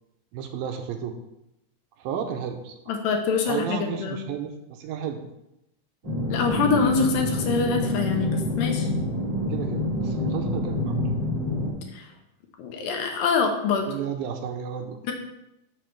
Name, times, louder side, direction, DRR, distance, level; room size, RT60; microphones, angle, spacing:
voice 1, 0.3-1.1 2.0-2.7 3.5-5.2 9.3-11.2 13.8-15.1, right 8 dB, 80° right, 5 dB, 2.3 m, -33 dB
voice 2, 2.9-4.2 6.3-8.9 11.9-12.1 12.6-13.9, left 5 dB, 75° left, 3 dB, 2.4 m, -25 dB
sound 1, 6.0-11.7, left 1 dB, 30° right, 2.0 m, -27 dB
6.5 x 6.5 x 4.5 m, 0.88 s
omnidirectional pair, 4.4 m